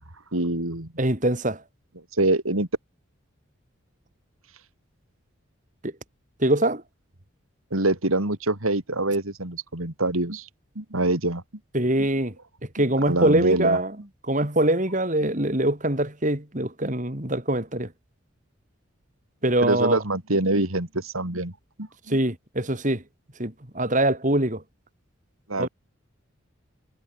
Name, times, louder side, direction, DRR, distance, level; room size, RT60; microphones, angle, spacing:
voice 1, 0.3-0.9 2.2-2.7 7.7-10.5 10.8-11.4 13.1-13.8 19.6-21.5 21.8-22.2 25.5-25.7, right 2 dB, 80° right, 3.8 m, -25 dB
voice 2, 1.0-1.6 5.8-5.9 6.4-6.8 11.7-12.3 12.7-13.9 14.3-17.9 19.4-20.0 22.1-23.0 23.4-24.6 25.6-25.7, right 1 dB, 35° right, 3.5 m, -23 dB
head